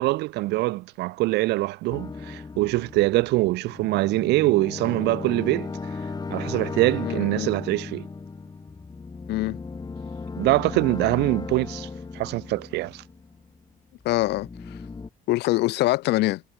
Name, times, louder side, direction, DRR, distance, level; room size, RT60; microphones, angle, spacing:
voice 1, 0.0-5.7 6.3-8.1 10.4-11.9 12.1-13.0, right 19 dB, 85° right, 1.2 m, -24 dB
sound 1, 1.9-13.6 14.0-15.1, left 4 dB, 25° left, 6.1 m, -36 dB
voice 2, 7.0-7.5 9.3-9.6 14.0-14.8 15.3-16.4, left 18 dB, 80° left, 1.3 m, -24 dB
cardioid pair, 110°, 17 cm